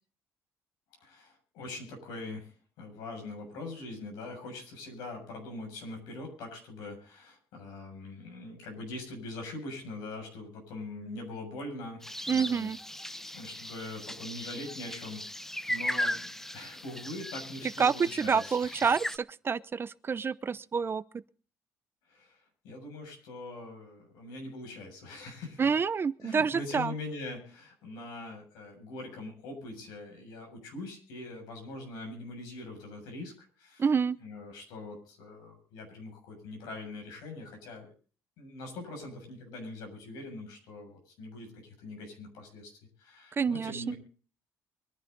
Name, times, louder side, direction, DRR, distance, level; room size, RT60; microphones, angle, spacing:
voice 1, 1.0-12.7 13.3-18.8 22.1-25.7 26.2-33.9 34.2-37.9 38.4-42.7 43.0-43.9, left 2 dB, 90° left, 7.1 m, -43 dB
sound 1, 12.0-19.2, left 1 dB, 5° left, 0.9 m, -37 dB
voice 2, 12.3-12.8 17.8-21.0 25.6-26.9 33.8-34.2 43.3-43.9, right 6 dB, 35° right, 0.7 m, -28 dB
24.0 x 11.0 x 4.0 m
cardioid pair, 85°, 7 cm